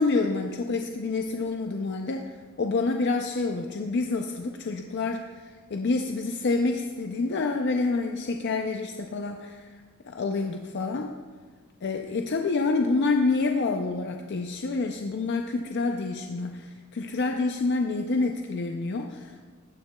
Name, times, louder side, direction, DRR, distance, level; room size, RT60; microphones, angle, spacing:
voice 1, 0.0-2.3 2.6-9.7 10.1-11.1 11.8-19.4, left 3 dB, 55° left, 4 dB, 0.5 m, -28 dB
15.0 x 9.4 x 2.3 m, 1.5 s
head